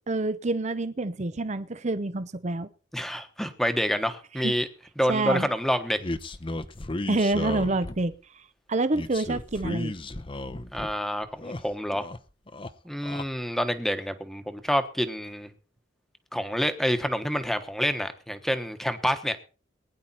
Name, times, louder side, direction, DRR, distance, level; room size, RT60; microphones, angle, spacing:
voice 1, 0.1-2.7 4.4-4.5 5.1-5.5 7.1-8.4 8.7-9.9, right 2 dB, 35° right, 0.7 m, -27 dB
voice 2, 2.9-4.7 5.0-6.0 10.7-12.1 12.8-15.5 16.3-19.4, equal, ahead, 1.2 m, -28 dB
sound 1, 6.0-8.2 8.9-10.9 11.2-12.2 12.5-13.3, left 2 dB, 25° left, 0.8 m, -34 dB
20.0 x 10.5 x 4.3 m
head